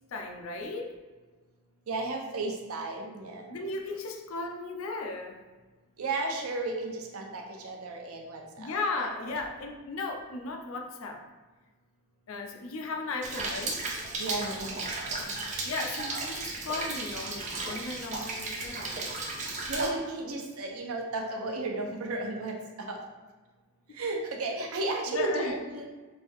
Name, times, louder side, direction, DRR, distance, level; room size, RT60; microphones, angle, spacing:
voice 1, 0.1-0.9 3.5-5.4 8.6-11.3 12.3-13.8 15.6-19.0 25.1-25.6, left 3 dB, 75° left, 3 dB, 0.5 m, -36 dB
voice 2, 1.9-3.6 6.0-8.7 9.2-9.5 14.2-15.4 19.5-23.0 23.9-25.9, right 2 dB, 85° right, 1 dB, 0.6 m, -34 dB
Rain, 13.2-19.9, right 3 dB, 35° right, 0.4 m, -35 dB
3.2 x 2.6 x 3.4 m, 1.3 s
head